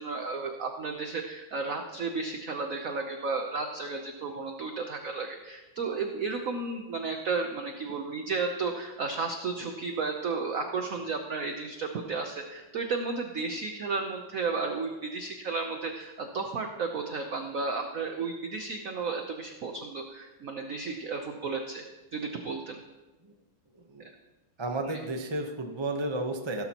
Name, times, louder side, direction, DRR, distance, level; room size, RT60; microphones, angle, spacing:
voice 1, 0.0-21.8 22.1-22.8 24.8-25.0, right 4 dB, 55° right, 4 dB, 1.1 m, -33 dB
voice 2, 24.6-26.6, right 2 dB, 25° right, 4 dB, 0.6 m, -32 dB
17.0 x 12.0 x 3.0 m, 1.1 s
omnidirectional pair, 2.1 m